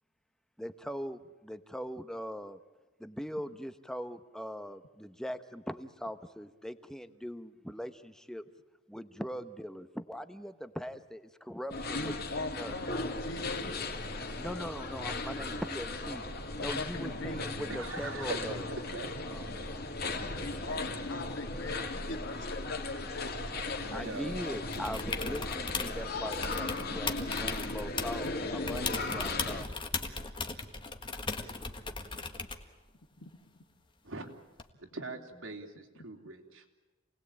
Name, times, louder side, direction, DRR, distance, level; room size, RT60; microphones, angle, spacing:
voice 1, 0.6-2.6 3.0-8.4 8.9-12.7 14.4-16.2 16.6-18.7 19.3-19.5 23.9-29.7, equal, 5° left, 10 dB, 1.0 m, -41 dB
sound 1, 11.7-29.6, left 2 dB, 50° left, 2.6 m, -37 dB
voice 2, 11.9-13.7 16.6-17.6 20.4-24.0 24.5-24.6 33.2-33.3, left 2 dB, 70° left, 8 dB, 1.9 m, -40 dB
voice 3, 17.7-19.1 23.8-24.5 24.8-24.9 34.0-34.3 34.8-36.9, right 3 dB, 85° right, 3 dB, 3.3 m, -42 dB
sound 2, 24.7-26.0 26.3-28.3 28.7-32.7 34.6-34.7, left 4 dB, 25° left, 1.6 m, -37 dB
28.5 x 19.5 x 8.8 m, 1.2 s
head